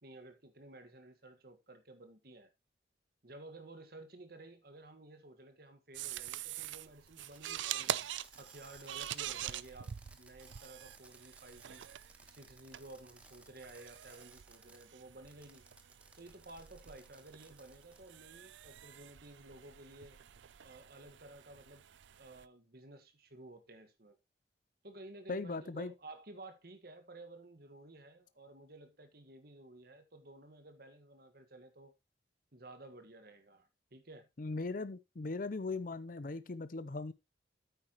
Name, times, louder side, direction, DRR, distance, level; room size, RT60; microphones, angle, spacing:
voice 1, 0.0-2.5 3.2-8.0 8.3-9.9 10.2-11.8 12.2-15.6 16.2-20.2 20.6-21.8 22.2-24.2 24.8-31.9 32.5-34.3, right 2 dB, 55° right, 1.6 m, -54 dB
sound 1, 5.9-22.5, right 11 dB, 85° right, 0.4 m, -45 dB
Fireworks, 7.0-14.9 15.3-18.1, right 2 dB, 5° right, 1.2 m, -62 dB
voice 2, 25.3-25.9 34.4-37.1, left 3 dB, 50° left, 0.6 m, -39 dB
8.9 x 8.8 x 3.0 m
head